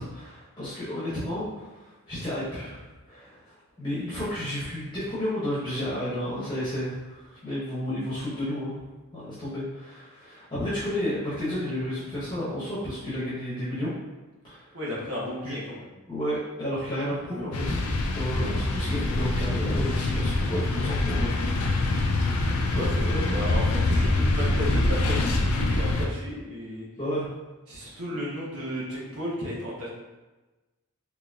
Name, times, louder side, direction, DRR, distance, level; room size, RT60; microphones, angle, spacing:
voice 1, 0.0-8.8 9.1-13.9 14.4-14.7 15.4-15.5 16.1-17.8 18.1-21.8 22.7-22.9 23.6-24.5 27.0-27.3, equal, 20° left, -12 dB, 1.0 m, -32 dB
voice 2, 14.7-15.9 22.7-26.8 27.7-29.9, left 1 dB, 70° right, -6 dB, 1.1 m, -34 dB
sound 1, 17.5-26.1, left 2 dB, 80° left, 0.5 m, -25 dB
3.9 x 2.9 x 2.4 m, 1.1 s
head